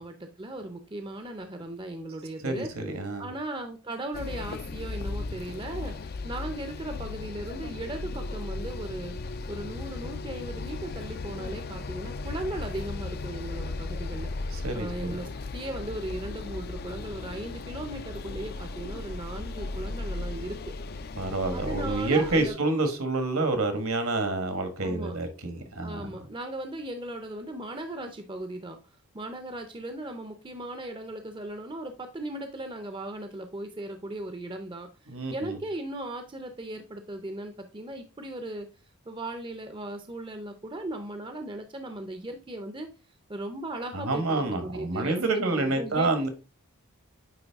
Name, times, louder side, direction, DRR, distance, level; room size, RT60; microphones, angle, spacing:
voice 1, 0.0-2.7 3.2-14.3 14.7-20.6 21.5-22.5 24.8-25.2 25.8-28.8 29.1-34.9 35.3-38.7 39.1-42.9 43.3-46.1, right 1 dB, 20° right, 0.5 m, -37 dB
voice 2, 2.4-3.3 14.5-15.2 21.2-26.1 35.1-35.6 43.9-46.3, right 2 dB, 70° right, 1.5 m, -28 dB
sound 1, 4.1-22.5, left 3 dB, 45° left, 0.4 m, -36 dB
9.2 x 3.2 x 3.4 m
head